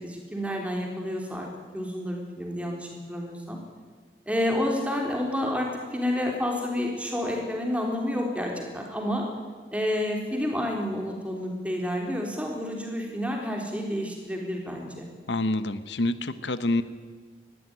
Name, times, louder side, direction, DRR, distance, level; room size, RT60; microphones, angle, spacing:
voice 1, 0.0-1.5 1.7-3.6 4.3-9.2 9.7-15.1, left 1 dB, 5° right, 1 dB, 3.9 m, -29 dB
voice 2, 15.3-16.8, left 2 dB, 90° left, 13 dB, 1.0 m, -27 dB
20.5 x 14.5 x 9.9 m, 1.5 s
head